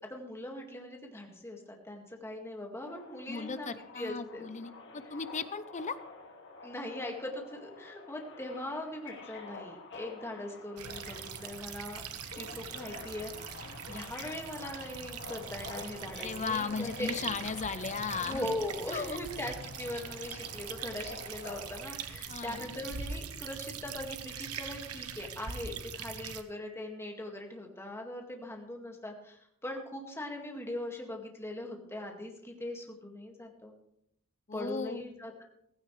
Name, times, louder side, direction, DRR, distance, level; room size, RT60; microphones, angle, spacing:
voice 1, 0.1-4.4 6.6-12.0 12.4-17.2 18.2-33.7 34.5-35.4, left 1 dB, 10° left, 1 dB, 2.1 m, -40 dB
Subway metro underground, 2.9-21.8, left 4 dB, 55° left, 2.5 m, -49 dB
voice 2, 3.3-5.9 16.2-18.4 18.9-19.2 22.3-22.8 34.5-35.0, left 5 dB, 35° left, 12 dB, 0.7 m, -36 dB
sound 1, 10.8-26.4, right 7 dB, 85° right, 1.0 m, -42 dB
16.0 x 15.5 x 3.3 m, 0.74 s
head